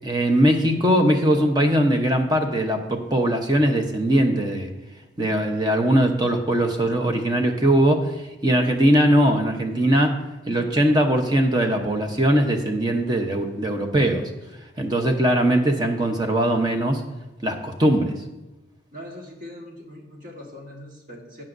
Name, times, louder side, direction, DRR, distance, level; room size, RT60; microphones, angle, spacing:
voice 1, 0.0-4.7 5.2-8.0 8.4-10.2 10.5-14.2 14.8-17.0 17.4-18.1, right 1 dB, 25° right, 4 dB, 0.9 m, -20 dB
voice 2, 18.9-21.4, left 1 dB, 45° right, 0 dB, 1.7 m, -41 dB
12.0 x 8.8 x 2.7 m, 1.0 s
head